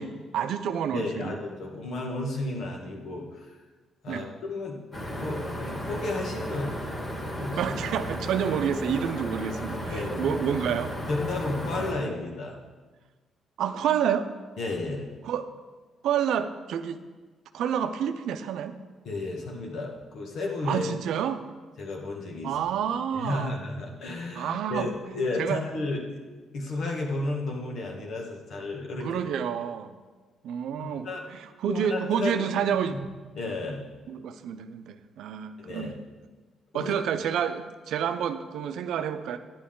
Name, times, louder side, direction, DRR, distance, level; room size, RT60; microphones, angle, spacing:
voice 1, 0.0-1.3 4.1-4.3 7.6-10.9 13.6-14.3 15.2-15.5 16.0-17.0 17.5-18.8 20.6-21.4 22.4-23.5 24.3-24.9 25.4-25.6 29.0-29.9 30.4-33.0 34.1-35.9 36.7-39.4, right 8 dB, 80° right, 9 dB, 0.6 m, -29 dB
voice 2, 0.9-3.6 4.0-4.8 5.1-6.7 7.1-7.8 9.9-10.3 11.1-12.6 14.6-15.1 19.1-20.9 21.8-22.5 23.1-26.2 26.5-29.1 30.8-31.3 31.7-32.5 32.9-33.0 33.4-33.8 35.6-35.9 36.7-36.9, left 2 dB, 65° left, 0 dB, 1.9 m, -33 dB
sound 1, 4.9-11.9, equal, 30° left, 2.2 m, -34 dB
10.0 x 8.5 x 3.9 m, 1.3 s
cardioid pair, 90°, 0 cm